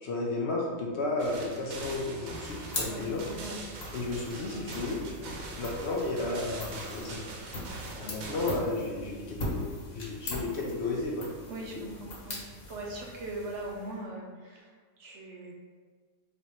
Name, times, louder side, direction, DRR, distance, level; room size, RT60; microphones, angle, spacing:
voice 1, 0.0-3.3 3.9-7.2 8.0-11.3, left 2 dB, 60° left, -2 dB, 0.8 m, -33 dB
sound 1, 1.2-8.6, right 3 dB, 80° right, 1.1 m, -42 dB
sound 2, 2.3-14.0, left 1 dB, 75° left, 1.5 m, -41 dB
voice 2, 11.5-12.4 12.7-15.5, right 2 dB, 65° right, -1 dB, 0.8 m, -40 dB
3.3 x 2.9 x 4.2 m, 1.6 s
omnidirectional pair, 1.4 m